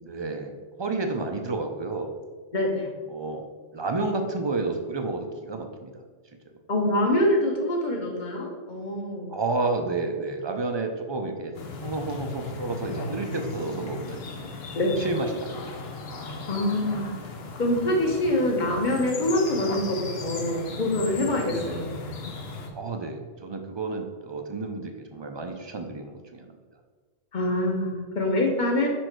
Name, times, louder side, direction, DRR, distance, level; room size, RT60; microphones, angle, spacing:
voice 1, 0.0-0.5 0.8-2.1 3.1-3.5 3.7-6.0 9.3-11.5 11.8-14.5 14.8-15.8 21.5-21.8 22.7-26.5, right 3 dB, 35° right, 4 dB, 0.5 m, -31 dB
voice 2, 2.5-2.9 6.7-9.3 14.7-14.9 16.5-17.1 17.6-22.0 27.3-28.9, left 1 dB, 50° left, 1 dB, 1.2 m, -25 dB
sound 1, 11.5-22.7, left 3 dB, 80° left, 1.0 m, -37 dB
5.4 x 4.4 x 4.5 m, 1.4 s
omnidirectional pair, 1.0 m